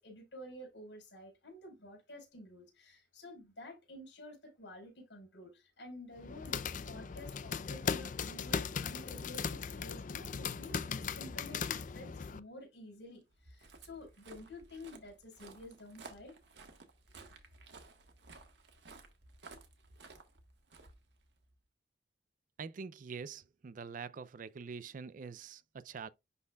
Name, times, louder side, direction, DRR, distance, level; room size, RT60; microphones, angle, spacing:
voice 1, 0.0-6.6 6.9-16.3 17.1-17.3, left 1 dB, 75° left, 4.6 m, -51 dB
sound 1, 6.2-12.4, left 6 dB, 45° left, 0.4 m, -38 dB
Walk footsteps, 13.3-21.6, right 3 dB, 80° right, 1.5 m, -56 dB
voice 2, 22.6-26.1, right 5 dB, 45° right, 0.4 m, -45 dB
11.0 x 4.2 x 2.3 m
head